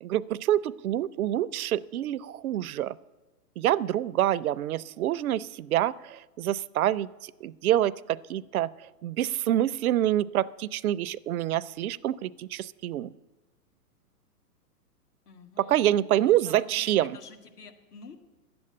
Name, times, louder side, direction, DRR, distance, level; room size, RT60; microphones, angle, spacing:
voice 1, 0.0-3.0 3.6-8.7 9.0-13.1 15.6-17.2, right 12 dB, 65° right, 18 dB, 0.5 m, -27 dB
voice 2, 15.3-15.7 16.2-18.2, left 5 dB, 75° left, 5 dB, 1.8 m, -48 dB
10.5 x 7.8 x 8.7 m, 1.1 s
hypercardioid pair, 135°, 47 cm